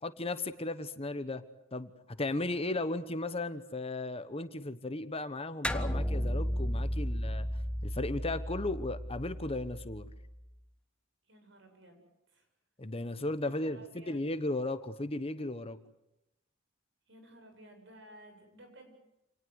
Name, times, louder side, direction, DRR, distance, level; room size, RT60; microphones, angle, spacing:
voice 1, 0.0-1.4 1.7-1.9 2.2-7.5 7.8-10.1 12.8-15.8, left 2 dB, 30° left, 12 dB, 1.1 m, -35 dB
sound 1, 5.6-10.4, equal, 5° left, 1.3 m, -34 dB
voice 2, 11.2-12.5 13.4-14.3 17.1-18.9, right 1 dB, 65° right, 5 dB, 8.0 m, -55 dB
28.0 x 19.0 x 8.0 m, 0.87 s
head